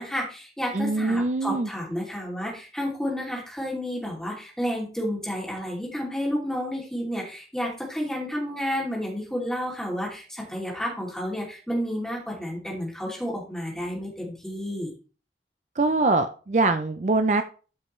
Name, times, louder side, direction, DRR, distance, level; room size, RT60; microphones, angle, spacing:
voice 1, 0.0-14.9, equal, 5° left, -3 dB, 2.6 m, -31 dB
voice 2, 0.7-1.7 15.8-17.4, right 3 dB, 40° right, 9 dB, 0.4 m, -23 dB
13.0 x 5.6 x 3.1 m, 0.37 s
head